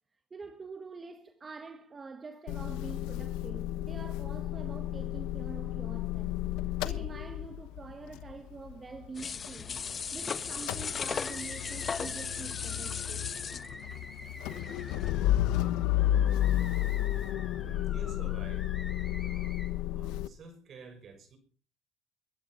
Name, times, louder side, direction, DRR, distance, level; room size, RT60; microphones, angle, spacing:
voice 1, 0.1-6.4 6.8-9.8 10.1-13.3, right 4 dB, 30° right, 1.6 m, -46 dB
Motor vehicle (road) / Engine starting / Idling, 2.5-10.2 10.4-20.3, left 13 dB, 85° left, 1.0 m, -32 dB
sound 1, 9.2-15.2 15.5-15.6, left 6 dB, 35° left, 0.9 m, -37 dB
sound 2, 11.0-19.7, left 2 dB, 15° left, 6.7 m, -48 dB
voice 2, 17.6-19.6 19.9-21.4, right 4 dB, 50° right, 6.0 m, -50 dB
22.0 x 10.5 x 5.7 m
supercardioid pair, 95°, 0 cm